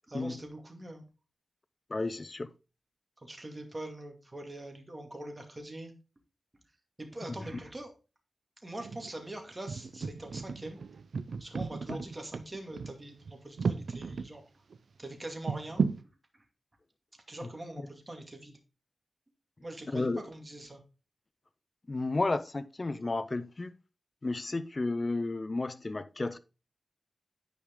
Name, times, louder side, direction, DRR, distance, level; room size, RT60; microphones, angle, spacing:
voice 1, 0.1-1.0 3.2-5.9 7.0-7.9 8.6-10.8 11.4-14.4 15.0-15.8 17.3-18.6 19.6-20.8, right 1 dB, 25° right, 2.3 m, -43 dB
voice 2, 1.9-2.5 7.3-7.4 11.9-12.0 19.9-20.2 21.9-23.7 24.2-26.4, left 2 dB, 35° left, 0.6 m, -32 dB
sound 1, 8.8-9.2 9.7-14.3 14.7-14.8 15.5-16.0, right 5 dB, 70° right, 0.6 m, -34 dB
10.0 x 5.0 x 3.8 m
wide cardioid pair, 80°, 0 cm